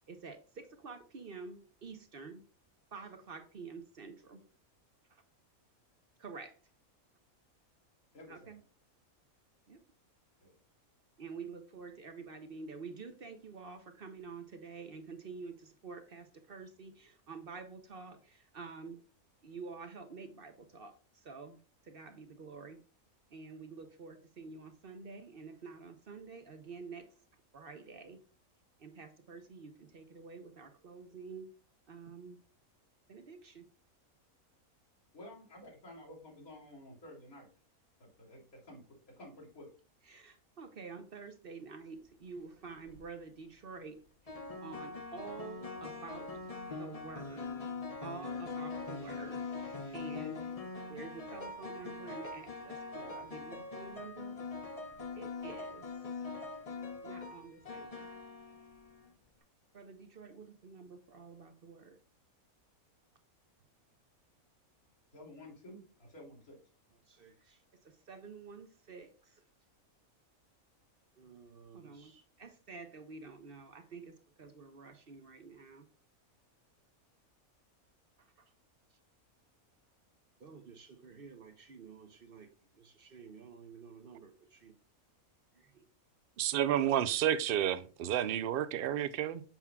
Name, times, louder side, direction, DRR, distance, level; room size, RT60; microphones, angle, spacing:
voice 1, 0.1-2.4 2.9-4.5 6.2-6.6 8.3-8.6 9.7-9.8 11.2-19.0 19.4-21.6 21.8-22.8 23.3-27.1 27.5-28.2 28.8-31.5 31.9-32.4 33.1-33.6 40.1-44.3 44.6-46.3 46.7-47.7 48.0-50.6 50.9-54.4 55.2-55.9 56.2-56.3 57.0-58.1 59.7-62.0 67.1-67.6 67.8-69.4 71.2-75.9 78.2-78.3 80.4-82.5 82.7-84.7 85.5-85.8, right 4 dB, 45° right, 0.8 m, -49 dB
voice 2, 8.1-8.5 10.4-10.6 35.1-37.5 38.0-38.9 39.2-39.7 65.1-66.6, left 1 dB, 75° left, 3.5 m, -52 dB
sound 1, 42.7-43.0 44.3-59.1, left 4 dB, 35° left, 0.7 m, -42 dB
voice 3, 86.4-89.4, right 11 dB, 70° right, 0.5 m, -30 dB
7.2 x 7.1 x 2.3 m
omnidirectional pair, 1.5 m